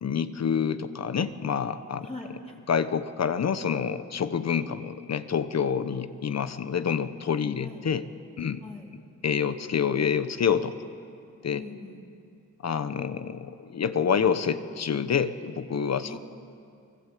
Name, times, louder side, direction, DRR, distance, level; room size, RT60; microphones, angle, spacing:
voice 1, 0.0-2.1 2.7-8.1 8.4-8.6 9.2-10.8 11.4-11.6 12.6-16.2, left 7 dB, 60° left, 11 dB, 1.2 m, -27 dB
voice 2, 2.0-2.6 7.5-7.9 8.6-8.9 11.5-12.0 16.0-16.2, left 2 dB, 20° left, -1 dB, 2.9 m, -42 dB
28.5 x 21.0 x 8.5 m, 2.4 s
wide cardioid pair, 105°, 30 cm